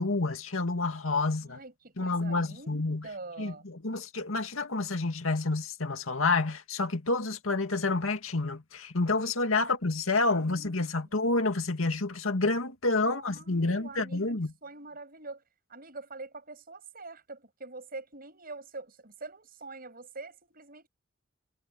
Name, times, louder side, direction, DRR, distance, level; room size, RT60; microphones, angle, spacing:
voice 1, 0.0-1.6 2.0-3.1 3.4-14.5, left 3 dB, 90° left, 2.2 m, -29 dB
voice 2, 1.4-3.6 10.4-10.7 11.0-11.3 13.0-15.4 15.7-20.9, right 3 dB, 45° right, 7.9 m, -45 dB
head